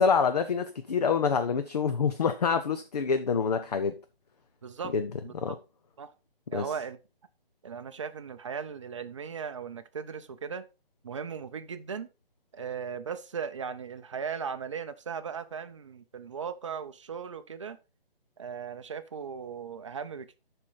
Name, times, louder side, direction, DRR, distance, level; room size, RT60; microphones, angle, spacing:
voice 1, 0.0-4.0 4.9-5.1 5.4-5.5 6.5-6.7, left 6 dB, 40° left, 0.6 m, -26 dB
voice 2, 4.6-4.9 5.2-5.6 6.0-6.1 6.5-7.0 7.6-10.7 11.0-12.1 12.5-17.8 18.4-20.4, right 6 dB, 30° right, 0.6 m, -37 dB
11.5 x 4.4 x 3.9 m
figure-of-eight pair, 160°, 30 cm